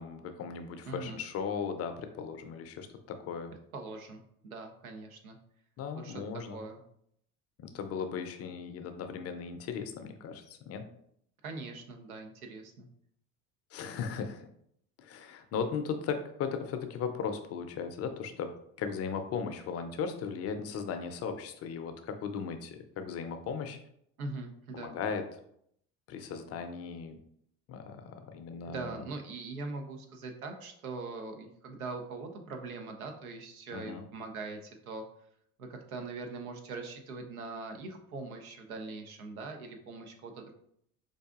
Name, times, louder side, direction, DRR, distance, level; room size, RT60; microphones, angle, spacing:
voice 1, 0.0-3.5 5.8-6.6 7.6-10.9 13.7-14.5 15.0-18.5 18.8-23.8 24.7-25.2 26.1-27.2 27.7-29.0 33.7-34.0, left 6 dB, 35° left, 7 dB, 0.5 m, -37 dB
voice 2, 0.9-1.2 3.7-5.4 5.9-6.8 11.4-12.9 24.2-24.9 28.7-35.0 35.6-40.5, right 3 dB, 90° right, 4 dB, 0.6 m, -42 dB
4.7 x 2.5 x 2.3 m, 0.71 s
hypercardioid pair, 65°, 42 cm